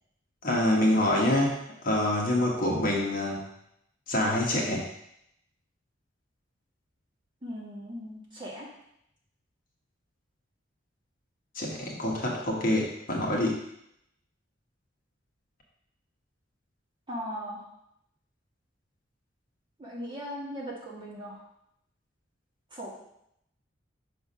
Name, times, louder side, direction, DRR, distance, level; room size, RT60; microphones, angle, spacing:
voice 1, 0.4-3.4 4.1-4.9 11.5-13.6, left 1 dB, 45° left, -2 dB, 1.3 m, -26 dB
voice 2, 7.4-8.7 17.1-17.6 19.8-21.4 22.7-22.9, equal, 25° right, -5 dB, 1.8 m, -38 dB
6.0 x 3.6 x 5.4 m, 0.77 s
head